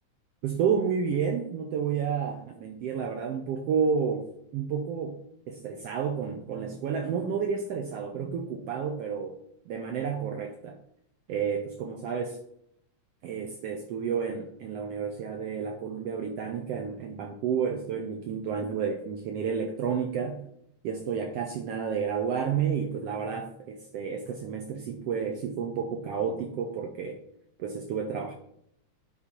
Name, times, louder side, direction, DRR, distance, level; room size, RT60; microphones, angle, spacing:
voice 1, 0.4-4.3 4.5-5.2 5.5-9.4 9.7-10.8 11.3-12.4 13.2-20.4 20.8-27.2 27.6-28.3, right 6 dB, 75° right, 3 dB, 1.5 m, -30 dB
9.6 x 4.2 x 4.4 m, 0.74 s
omnidirectional pair, 3.4 m